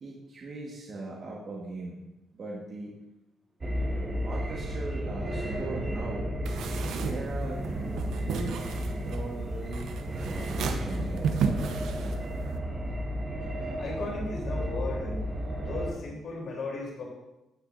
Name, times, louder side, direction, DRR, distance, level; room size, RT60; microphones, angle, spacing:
voice 1, 0.0-2.0 2.3-3.0 4.2-6.3 6.9-7.6 8.1-8.6 8.9-9.9 10.2-11.3, right 2 dB, 50° right, -3 dB, 1.6 m, -39 dB
sound 1, 3.6-15.9, equal, 30° right, 1.4 m, -33 dB
sound 2, 6.4-12.6, right 6 dB, 80° right, 0.7 m, -34 dB
voice 2, 13.8-15.2 15.6-17.0, left 3 dB, 65° left, -2 dB, 3.6 m, -36 dB
16.0 x 5.8 x 2.7 m, 0.94 s
cardioid pair, 90°, 0 cm